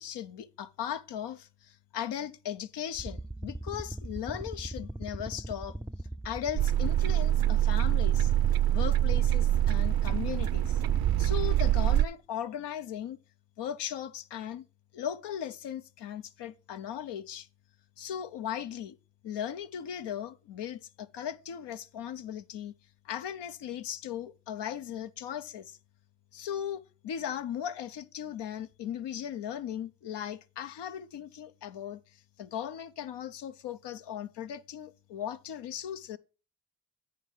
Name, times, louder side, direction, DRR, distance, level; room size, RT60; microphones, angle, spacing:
voice 1, 0.0-5.8 6.2-8.3 8.7-10.8 11.2-13.2 13.6-14.7 14.9-17.5 18.0-19.0 19.2-22.7 23.0-25.8 26.3-32.0 32.4-36.2, left 9 dB, 80° left, 0.7 m, -37 dB
sound 1, 2.9-11.7, right 1 dB, ahead, 0.3 m, -40 dB
sound 2, 6.6-12.1, right 13 dB, 60° right, 0.5 m, -25 dB
9.2 x 4.6 x 4.8 m
supercardioid pair, 40°, 41 cm